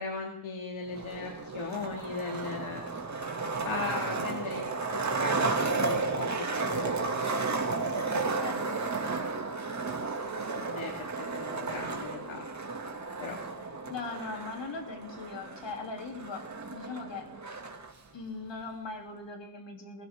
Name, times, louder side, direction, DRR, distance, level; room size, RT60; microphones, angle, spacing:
voice 1, 0.0-2.8 3.6-7.1 10.5-10.9 11.2-12.5 13.2-13.4 13.7-13.9, left 4 dB, 80° left, 1 dB, 2.6 m, -38 dB
Skateboard, 0.9-17.9, right 3 dB, 35° right, 2.6 m, -33 dB
voice 2, 8.1-8.8 13.9-17.3 18.1-20.1, left 4 dB, 65° left, 3 dB, 3.6 m, -40 dB
20.0 x 17.0 x 3.8 m, 0.81 s
cardioid pair, 85°, 48 cm